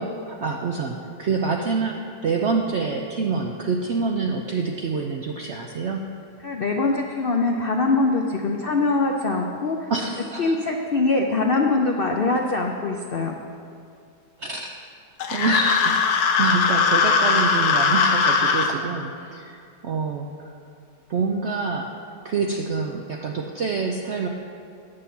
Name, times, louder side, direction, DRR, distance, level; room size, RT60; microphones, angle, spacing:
voice 1, 0.0-6.0 9.9-10.6 14.4-14.8 15.3-20.6 21.1-21.9 22.2-24.3, right 4 dB, 75° right, 2 dB, 0.6 m, -26 dB
voice 2, 6.4-9.9 10.4-13.4, left 3 dB, 90° left, 2 dB, 0.5 m, -23 dB
sound 1, 15.2-18.7, left 5 dB, 70° left, 1.2 m, -20 dB
9.3 x 6.7 x 6.9 m, 2.4 s
omnidirectional pair, 1.9 m